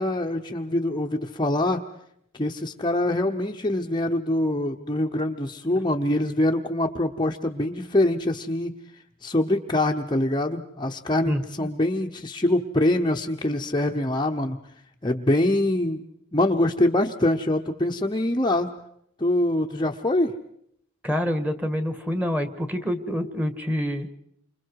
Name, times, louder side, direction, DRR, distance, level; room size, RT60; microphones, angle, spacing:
voice 1, 0.0-1.8 2.3-8.7 9.2-14.6 15.0-16.0 16.3-18.7 19.2-20.3, left 1 dB, 20° left, 3 dB, 1.0 m, -24 dB
voice 2, 11.3-11.7 21.0-24.1, equal, 5° right, 9 dB, 1.8 m, -27 dB
29.0 x 26.0 x 4.8 m, 0.73 s
head